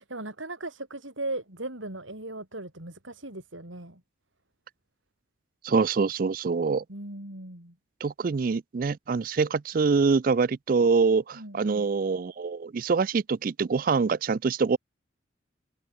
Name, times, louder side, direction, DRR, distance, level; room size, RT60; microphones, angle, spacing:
voice 1, 0.0-4.0 6.9-7.8 11.3-11.9, right 2 dB, 80° right, 7.4 m, -38 dB
voice 2, 5.6-6.8 8.0-14.8, right 4 dB, 45° right, 0.4 m, -25 dB
head